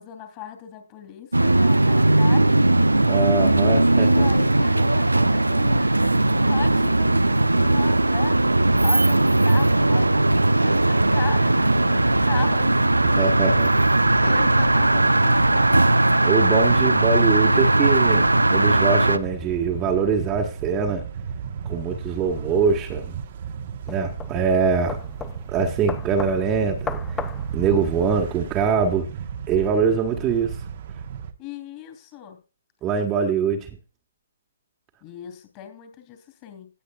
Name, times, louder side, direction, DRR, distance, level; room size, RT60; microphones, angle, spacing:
voice 1, 0.0-2.7 3.8-10.3 10.6-13.5 14.0-15.9 31.4-32.4 35.0-36.7, left 10 dB, 30° left, 3.0 m, -38 dB
sound 1, 1.3-19.2, right 2 dB, 85° right, 0.5 m, -18 dB
voice 2, 3.1-4.3 13.2-13.7 16.2-21.0 21.6-23.1 23.9-25.0 25.5-27.0 27.5-29.1 29.5-30.6 32.8-33.7, right 5 dB, 20° right, 1.4 m, -23 dB
sound 2, 12.1-31.3, right 7 dB, 45° right, 1.1 m, -35 dB
sound 3, 22.7-28.4, left 6 dB, 10° left, 0.6 m, -37 dB
18.0 x 7.8 x 2.4 m
figure-of-eight pair, 130°, 0 cm